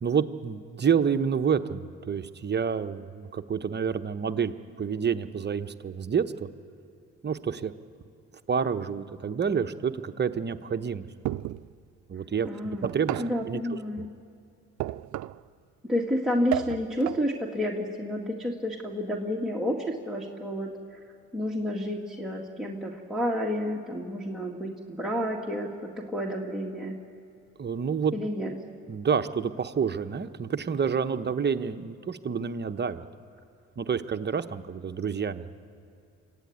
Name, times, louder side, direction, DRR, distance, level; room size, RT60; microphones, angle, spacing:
voice 1, 0.0-6.5 7.2-7.7 8.5-11.1 12.1-14.1 27.6-28.1 28.9-33.0 33.8-35.5, right 6 dB, 35° right, 8 dB, 0.9 m, -28 dB
sound 1, 11.2-11.7 12.8-13.4 14.8-15.5 16.5-17.3, right 15 dB, 75° right, 0.5 m, -33 dB
voice 2, 12.4-12.9 13.2-14.1 15.9-20.7 21.3-26.9 28.1-28.5, equal, ahead, -3 dB, 2.1 m, -30 dB
25.5 x 14.5 x 9.5 m, 2.6 s
cardioid pair, 90°, 30 cm